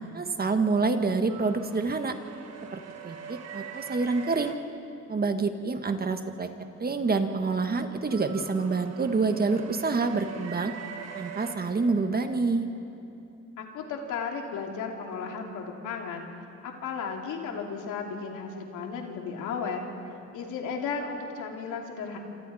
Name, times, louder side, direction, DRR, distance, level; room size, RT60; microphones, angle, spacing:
voice 1, 0.0-2.1 2.7-4.5 5.1-6.5 6.8-10.7 11.1-12.7, right 4 dB, 30° right, 7 dB, 1.6 m, -27 dB
sound 1, 1.3-4.6 7.0-12.5, right 7 dB, 55° right, 1.9 m, -43 dB
voice 2, 13.6-16.3 16.6-19.8 20.3-22.2, left 5 dB, 85° left, 1 dB, 2.8 m, -34 dB
28.0 x 26.5 x 4.3 m, 2.7 s
cardioid pair, 90°, 30 cm